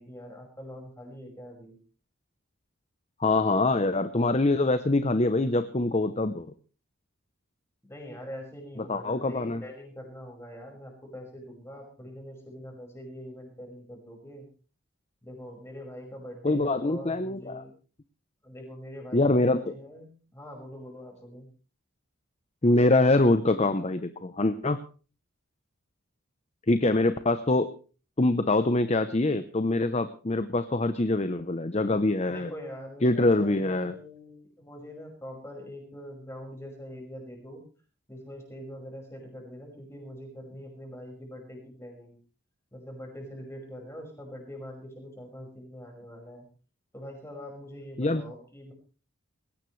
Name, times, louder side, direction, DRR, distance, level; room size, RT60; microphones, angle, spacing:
voice 1, 0.0-1.8 7.8-14.5 15.2-17.7 18.4-21.5 32.3-37.6 38.1-42.2 42.7-46.4 46.9-48.7, equal, 10° left, 1 dB, 5.6 m, -43 dB
voice 2, 3.2-6.5 8.9-9.6 16.4-17.6 19.1-19.7 22.6-24.8 26.7-27.7 28.2-32.5 33.0-34.0 48.0-48.2, left 2 dB, 30° left, 11 dB, 0.7 m, -24 dB
20.0 x 17.0 x 3.2 m, 0.37 s
head